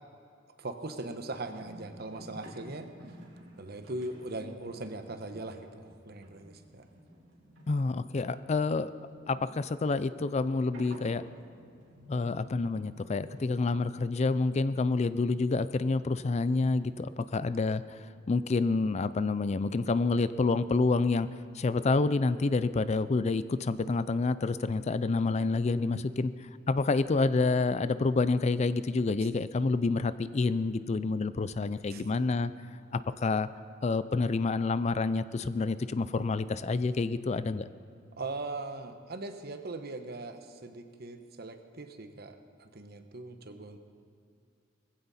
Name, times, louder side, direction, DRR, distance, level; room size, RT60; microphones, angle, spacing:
voice 1, 0.6-2.9 3.6-6.8 31.9-32.0 38.2-43.8, right 2 dB, 55° right, 7 dB, 1.1 m, -40 dB
sound 1, 1.5-17.2, equal, 75° right, 3.3 m, -53 dB
voice 2, 7.7-8.9 9.3-11.2 12.1-17.8 18.3-21.3 21.5-26.3 26.7-32.5 32.9-33.5 33.8-37.7, left 3 dB, 35° left, 14 dB, 0.4 m, -28 dB
20.0 x 15.5 x 4.2 m, 2.4 s
head